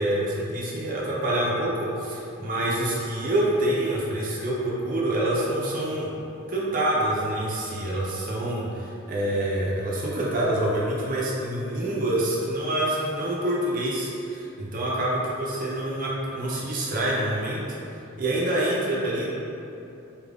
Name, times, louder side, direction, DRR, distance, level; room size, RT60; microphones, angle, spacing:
voice 1, 0.0-6.1 6.5-17.6 18.2-19.3, right 1 dB, 40° right, -5 dB, 0.5 m, -26 dB
4.2 x 2.5 x 3.4 m, 2.8 s
head